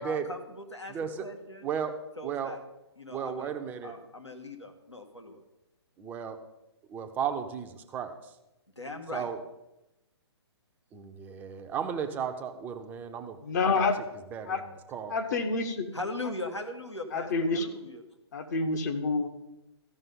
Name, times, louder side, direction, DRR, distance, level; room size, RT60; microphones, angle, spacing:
voice 1, 0.0-1.7 2.2-2.6 3.0-3.5 3.8-5.4 8.8-9.3 15.9-18.0, left 2 dB, 90° left, 3 dB, 1.5 m, -39 dB
voice 2, 0.9-1.3 1.6-1.9 2.2-2.6 3.1-3.9 6.0-6.4 6.9-8.1 9.1-9.4 10.9-13.4 13.6-13.9 14.3-15.1, right 7 dB, 10° right, 6 dB, 0.6 m, -34 dB
voice 3, 13.4-14.0 14.5-14.6 15.1-15.9 17.1-17.7 18.3-19.3, left 3 dB, 40° left, 5 dB, 0.9 m, -28 dB
14.0 x 5.5 x 5.4 m, 0.95 s
figure-of-eight pair, 130°, 14 cm